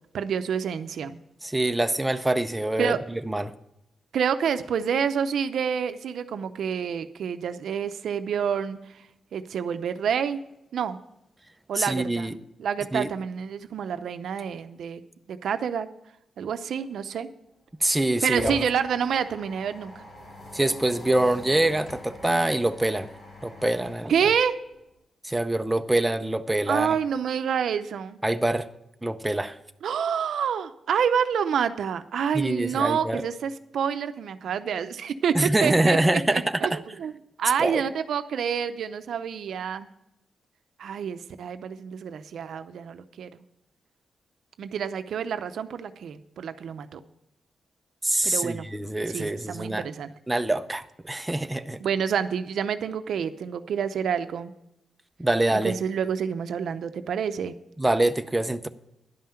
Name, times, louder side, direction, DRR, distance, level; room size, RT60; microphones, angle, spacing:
voice 1, 0.1-1.2 2.8-3.0 4.1-9.0 9.3-10.4 10.7-11.0 11.7-15.0 15.3-15.9 16.4-17.3 18.2-20.0 24.1-24.6 26.7-28.2 29.8-37.1 37.4-39.9 40.8-43.4 44.6-47.0 48.2-48.7 49.1-50.1 51.8-54.5 55.5-57.6, right 7 dB, 75° right, 0.6 m, -28 dB
voice 2, 1.4-3.0 3.3-3.5 11.7-12.3 12.9-13.1 17.8-18.7 20.5-23.1 23.4-24.1 25.2-26.9 28.2-28.7 29.0-29.6 32.3-33.2 35.3-36.8 37.6-37.9 48.0-49.9 50.3-51.8 55.2-55.8 57.8-58.7, right 1 dB, 10° right, 0.5 m, -25 dB
sound 1, 17.5-24.9, left 1 dB, 45° left, 3.9 m, -42 dB
11.0 x 5.7 x 8.8 m
wide cardioid pair, 140°, 0 cm